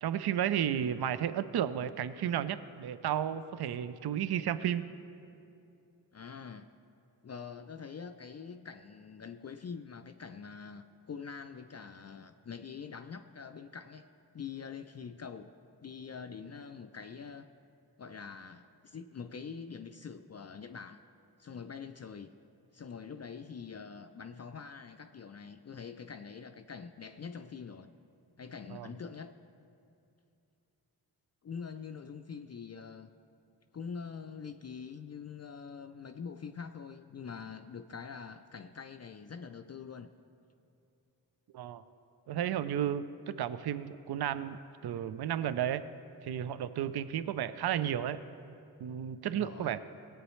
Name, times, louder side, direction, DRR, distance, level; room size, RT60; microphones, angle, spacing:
voice 1, 0.0-4.9 28.7-28.9 41.5-41.8 42.3-45.8 46.2-48.2 48.8-49.8, right 10 dB, 65° right, 14 dB, 0.5 m, -33 dB
voice 2, 6.1-6.7 7.2-14.1 14.3-15.5 15.8-17.5 18.0-21.0 21.4-22.3 22.7-27.9 28.4-29.3 31.4-33.1 33.7-40.1 49.2-49.7, left 6 dB, 40° left, 8 dB, 0.4 m, -44 dB
17.0 x 8.3 x 3.2 m, 2.7 s
cardioid pair, 45°, 42 cm